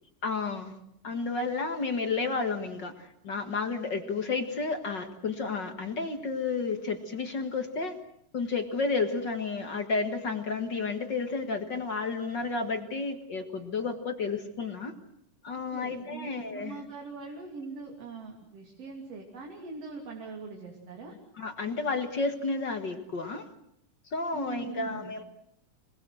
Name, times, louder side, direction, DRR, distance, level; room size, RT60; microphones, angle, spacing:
voice 1, 0.2-0.8 1.0-8.0 8.3-14.9 15.4-16.8 21.4-23.5 24.1-25.2, left 4 dB, 40° left, 6 dB, 1.9 m, -31 dB
voice 2, 15.7-21.2 24.3-25.1, right 4 dB, 50° right, 1 dB, 3.8 m, -42 dB
26.5 x 20.5 x 7.7 m, 0.73 s
omnidirectional pair, 3.6 m